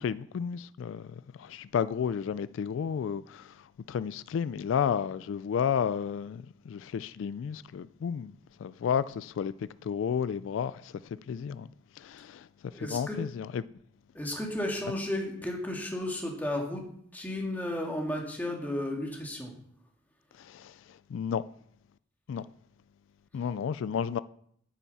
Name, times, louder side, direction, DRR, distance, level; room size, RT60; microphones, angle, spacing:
voice 1, 0.0-8.3 8.6-11.7 12.0-12.5 12.8-13.6 20.4-21.4 22.3-22.4 23.3-24.2, left 7 dB, 90° left, 0.3 m, -32 dB
voice 2, 12.7-13.2 14.1-16.9 17.1-19.5, left 1 dB, 10° left, 1.9 m, -33 dB
9.3 x 9.0 x 4.1 m
head